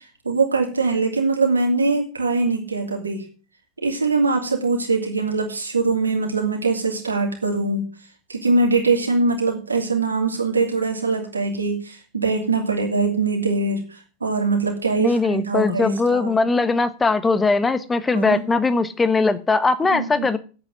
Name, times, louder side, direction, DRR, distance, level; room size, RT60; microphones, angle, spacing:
voice 1, 0.2-3.2 3.8-7.9 8.3-16.4 18.1-18.4 19.9-20.3, right 3 dB, 75° right, 1 dB, 2.8 m, -22 dB
voice 2, 15.0-20.4, left 3 dB, 15° left, 13 dB, 1.1 m, -20 dB
8.7 x 8.4 x 7.8 m, 0.38 s
figure-of-eight pair, 90°, 0 cm